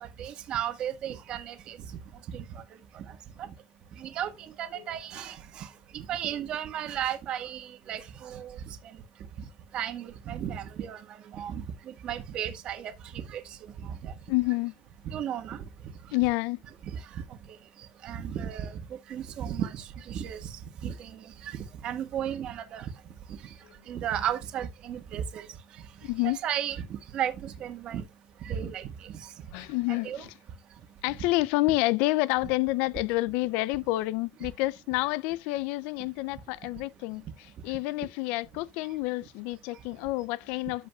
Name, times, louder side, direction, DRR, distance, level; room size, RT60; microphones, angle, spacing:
voice 1, 0.0-1.8 2.3-2.6 2.9-3.5 4.0-9.0 9.4-9.5 9.7-13.4 13.8-14.1 15.0-15.6 16.9-22.9 23.3-23.5 23.9-25.5 26.2-28.0 28.4-29.3 30.0-30.2, right 9 dB, 45° right, 1.5 m, -35 dB
voice 2, 14.3-14.7 16.1-16.6 23.6-23.7 26.0-26.4 29.5-30.4 31.0-40.9, left 20 dB, 80° left, 0.4 m, -29 dB
14.0 x 4.9 x 2.3 m
cardioid pair, 150°, 2 cm